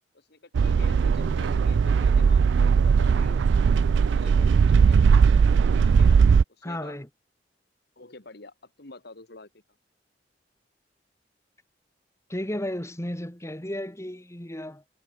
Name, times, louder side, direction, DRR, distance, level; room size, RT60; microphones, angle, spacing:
voice 1, 0.1-3.4 4.1-5.1 5.8-6.2 6.6-7.0 8.0-9.5, left 2 dB, 65° left, 2.2 m, -46 dB
sound 1, 0.5-6.4, right 6 dB, 75° right, 0.3 m, -19 dB
voice 2, 6.6-7.1 12.3-14.8, left 1 dB, 15° left, 2.6 m, -33 dB
head